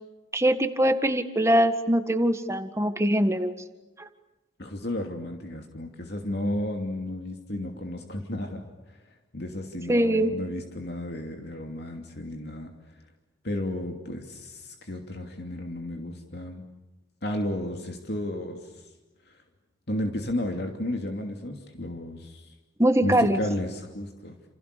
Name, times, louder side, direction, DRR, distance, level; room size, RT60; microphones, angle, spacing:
voice 1, 0.3-3.5 4.0-4.1 9.9-10.3 22.8-23.4, right 1 dB, 15° right, 8 dB, 1.8 m, -22 dB
voice 2, 4.6-9.0 9.3-13.0 13.4-16.6 17.2-18.9 19.3-19.4 19.9-22.5 23.0-24.4, left 1 dB, 55° left, 3 dB, 2.8 m, -33 dB
30.0 x 29.0 x 6.8 m, 1.1 s
head